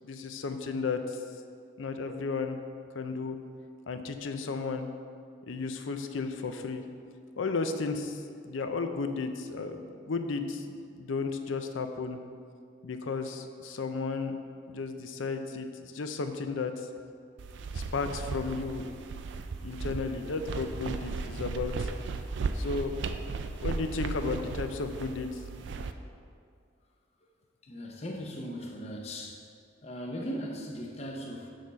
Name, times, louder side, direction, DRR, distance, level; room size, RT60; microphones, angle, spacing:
voice 1, 0.0-1.2 1.8-2.6 2.9-3.4 3.9-4.9 5.5-6.8 7.4-12.2 12.8-14.4 14.7-16.9 17.7-18.9 19.6-21.9 22.5-23.2 23.6-25.4, left 4 dB, 85° left, 7 dB, 0.5 m, -34 dB
sound 1, 17.4-25.9, right 4 dB, 70° right, 0.4 m, -36 dB
voice 2, 27.6-29.5 29.8-31.5, equal, 30° left, 0 dB, 0.7 m, -38 dB
6.5 x 4.1 x 6.3 m, 2.3 s
head